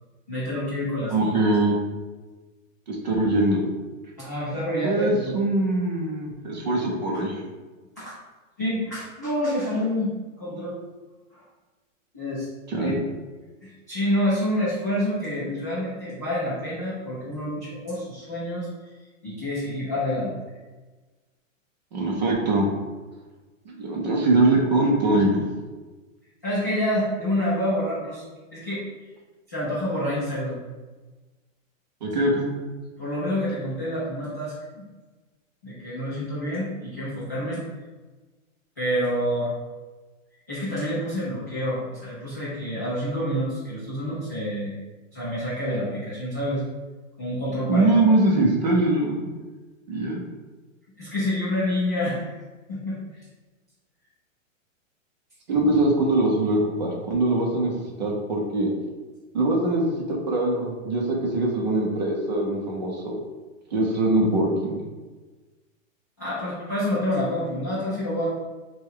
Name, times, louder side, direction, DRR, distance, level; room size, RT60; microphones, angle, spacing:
voice 1, 0.3-1.3 4.2-5.3 8.0-8.1 8.6-10.8 11.3-11.4 12.1-12.5 12.8-12.9 13.6-18.7 19.2-20.4 26.4-28.2 28.5-28.8 29.5-30.6 33.0-34.9 35.6-37.6 38.8-39.5 40.5-44.8 45.1-46.6 47.2-47.9 51.0-52.4 52.7-53.0 66.2-68.3, left 1 dB, 15° left, -13 dB, 0.4 m, -27 dB
voice 2, 1.1-1.8 2.9-3.7 4.8-7.4 12.7-12.9 21.9-22.7 23.7-25.4 32.0-32.5 47.7-49.3 49.9-50.2 55.5-57.7 58.0-58.7 59.3-63.2 63.7-64.8, right 2 dB, 35° right, -1 dB, 0.6 m, -22 dB
6.1 x 2.3 x 3.6 m, 1.3 s
hypercardioid pair, 175°, 40 cm